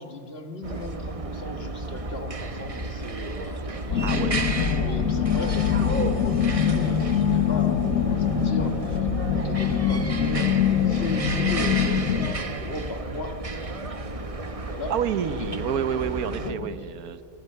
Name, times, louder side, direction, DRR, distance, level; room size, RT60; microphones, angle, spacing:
voice 1, 0.0-13.7 14.1-14.9 15.4-15.6 16.3-16.9, left 2 dB, 45° left, 7 dB, 1.8 m, -37 dB
sound 1, 0.6-16.5, right 3 dB, 25° right, 1.0 m, -33 dB
sound 2, 3.9-12.3, left 7 dB, 65° left, 1.6 m, -24 dB
voice 2, 4.0-4.4 14.9-17.2, right 8 dB, 90° right, 13 dB, 1.4 m, -28 dB
26.0 x 19.5 x 6.7 m, 2.6 s
omnidirectional pair, 1.5 m